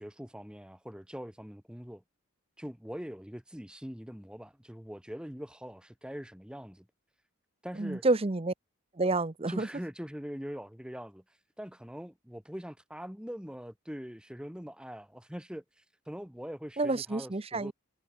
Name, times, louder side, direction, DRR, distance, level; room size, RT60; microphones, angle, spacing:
voice 1, 0.0-2.0 2.6-6.9 7.6-8.0 9.5-17.7, equal, 5° right, 1.2 m, -43 dB
voice 2, 7.8-8.5 9.0-9.7 16.8-17.7, right 2 dB, 25° right, 0.7 m, -29 dB
head